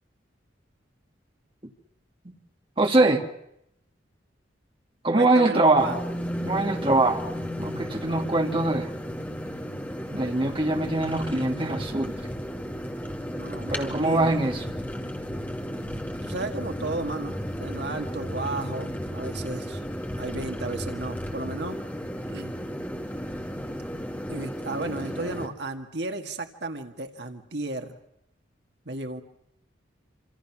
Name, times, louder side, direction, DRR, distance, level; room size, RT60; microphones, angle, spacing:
voice 1, 2.8-3.2 5.0-6.0 6.4-7.3 7.6-8.9 10.1-12.3 13.7-14.7, right 2 dB, 30° right, 3 dB, 2.4 m, -23 dB
voice 2, 5.1-6.0 13.3-14.3 16.2-19.8 20.2-21.8 22.3-22.6 24.3-28.0 28.9-29.2, right 2 dB, 65° right, 5 dB, 1.9 m, -34 dB
sound 1, 5.7-25.5, equal, 10° left, 2.4 m, -34 dB
27.5 x 27.0 x 6.1 m, 0.80 s
head